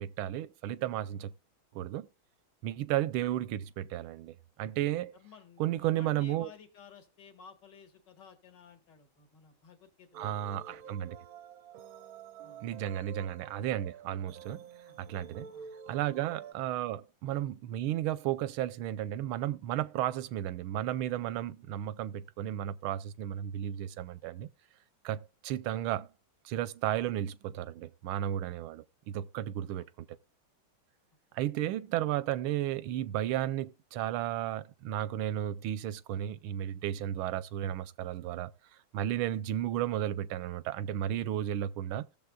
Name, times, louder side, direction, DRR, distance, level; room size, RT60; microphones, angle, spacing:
voice 1, 0.0-1.3 1.7-2.1 2.6-5.2 5.6-6.5 10.1-11.2 12.6-14.6 15.0-15.5 15.9-24.5 25.0-26.1 26.4-30.1 31.3-38.5 38.9-42.0, right 12 dB, 85° right, 1.4 m, -33 dB
voice 2, 5.1-10.9 12.4-12.7 14.8-15.0 15.5-15.7 16.5-16.6 29.8-29.9, left 6 dB, 60° left, 2.3 m, -55 dB
sound 1, 10.1-16.5, right 7 dB, 70° right, 0.9 m, -49 dB
16.5 x 6.9 x 2.2 m
omnidirectional pair, 2.2 m